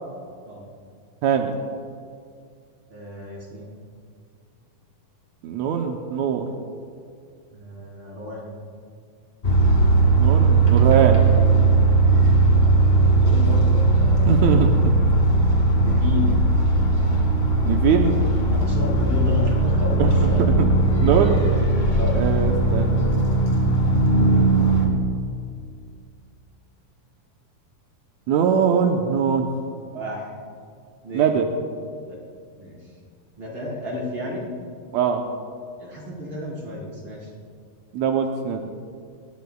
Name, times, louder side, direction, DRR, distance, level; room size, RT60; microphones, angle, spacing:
voice 1, 1.2-1.5 5.4-6.5 10.2-11.2 14.3-14.9 17.6-18.1 20.0-21.4 22.1-23.0 28.3-29.5 31.1-31.5 34.9-35.2 37.9-38.7, right 7 dB, 75° right, 3 dB, 1.7 m, -22 dB
voice 2, 2.9-3.7 7.5-8.5 12.4-14.6 15.8-16.5 18.5-20.4 21.9-22.2 29.9-30.3 31.0-31.4 32.1-32.2 32.6-32.8 33.4-34.5 35.8-37.3, left 2 dB, 35° right, -5 dB, 4.8 m, -32 dB
sound 1, 9.4-24.9, right 2 dB, 25° left, 1.7 m, -18 dB
22.0 x 20.0 x 2.4 m, 2.2 s
omnidirectional pair, 4.2 m